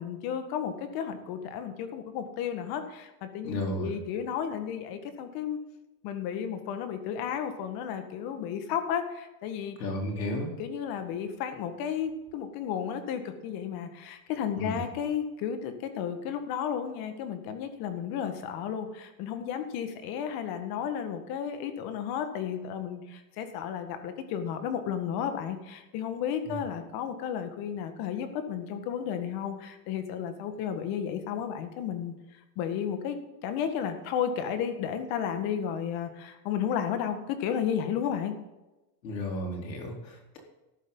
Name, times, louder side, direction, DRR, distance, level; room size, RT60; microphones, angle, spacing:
voice 1, 0.0-5.6 6.0-9.8 10.6-32.1 32.6-38.3, left 8 dB, 45° left, 8 dB, 1.7 m, -33 dB
voice 2, 3.4-4.0 9.8-10.5 14.6-14.9 26.5-26.6 39.0-40.4, left 1 dB, 90° left, 0 dB, 4.0 m, -33 dB
13.5 x 11.0 x 4.0 m, 1.0 s
supercardioid pair, 125°, 49 cm